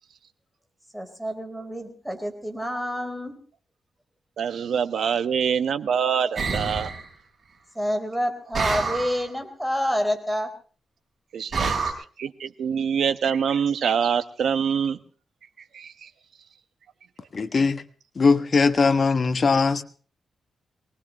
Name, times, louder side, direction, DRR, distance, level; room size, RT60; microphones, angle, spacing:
voice 1, 0.9-3.4 7.7-10.5 11.6-11.7, equal, ahead, 5 dB, 3.9 m, -28 dB
voice 2, 4.4-6.9 11.3-11.8 12.2-15.0 15.7-16.1, right 7 dB, 75° right, 9 dB, 1.2 m, -25 dB
sound 1, 6.4-7.0 8.5-9.2 11.5-11.9, right 4 dB, 45° right, 7.1 m, -27 dB
voice 3, 17.3-17.8 18.2-19.8, left 4 dB, 45° left, 8 dB, 1.3 m, -20 dB
24.0 x 19.0 x 3.0 m, 0.40 s
cardioid pair, 105°, 0 cm